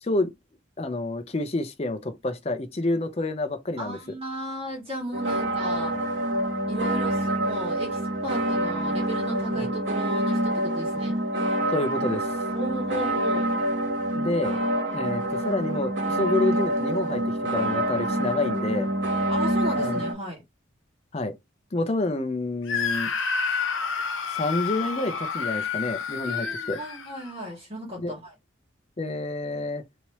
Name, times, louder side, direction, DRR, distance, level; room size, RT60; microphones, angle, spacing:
voice 1, 0.8-4.0 9.5-9.7 11.7-12.3 14.1-14.6 14.9-17.2 17.5-18.9 19.8-20.0 21.1-21.3 21.7-23.1 24.3-26.8 28.0-28.1 29.0-29.8, left 2 dB, 30° left, 0.5 m, -28 dB
voice 2, 3.8-6.0 6.7-11.1 12.5-13.5 19.3-20.4 26.2-28.3, right 1 dB, 30° right, 1.3 m, -35 dB
sound 1, 5.1-20.1, right 1 dB, 75° right, 1.4 m, -26 dB
Screaming, 22.7-27.5, left 6 dB, 80° left, 0.8 m, -29 dB
3.1 x 2.8 x 3.0 m
head